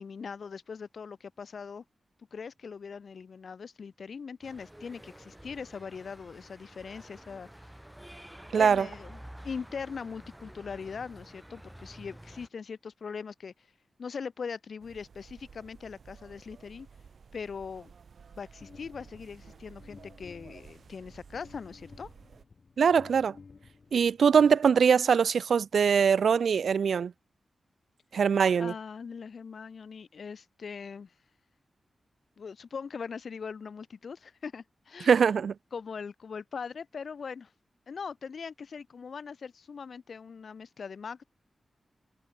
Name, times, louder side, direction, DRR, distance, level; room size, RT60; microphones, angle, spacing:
voice 1, 0.0-1.8 2.3-7.5 8.5-9.2 9.4-13.5 14.0-16.9 17.3-17.9 18.4-22.1 28.6-31.1 32.4-35.1 35.7-37.5 37.9-41.2, left 5 dB, 60° left, 2.4 m, -41 dB
sound 1, 4.4-12.5, right 1 dB, 5° right, 5.9 m, -50 dB
voice 2, 8.5-8.9 22.8-23.3 23.9-27.1 28.1-28.7 35.0-35.5, right 6 dB, 85° right, 0.3 m, -22 dB
sound 2, 14.8-22.4, right 6 dB, 60° right, 2.1 m, -54 dB
sound 3, 18.6-25.2, left 4 dB, 45° left, 5.9 m, -54 dB
wide cardioid pair, 160°, 0 cm